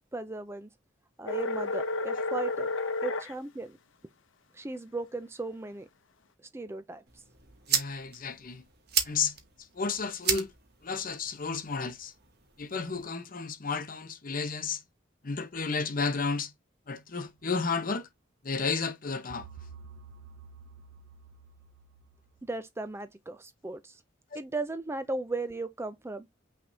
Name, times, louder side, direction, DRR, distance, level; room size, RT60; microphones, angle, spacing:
voice 1, 0.1-0.7 1.2-2.7 3.0-3.8 4.5-5.9 6.5-7.0 22.4-24.0 24.3-26.3, right 2 dB, 15° right, 0.4 m, -36 dB
sound 1, 1.3-3.3, left 3 dB, 85° left, 0.7 m, -31 dB
sound 2, 7.1-13.1, right 8 dB, 55° right, 1.1 m, -35 dB
voice 2, 7.7-8.6 9.0-10.5 10.8-12.1 12.6-14.8 15.2-16.5 16.9-18.1 18.4-19.5 24.3-24.4, left 4 dB, 45° left, 0.9 m, -32 dB
sound 3, 19.3-22.4, right 5 dB, 90° right, 0.7 m, -50 dB
5.8 x 3.4 x 2.7 m
head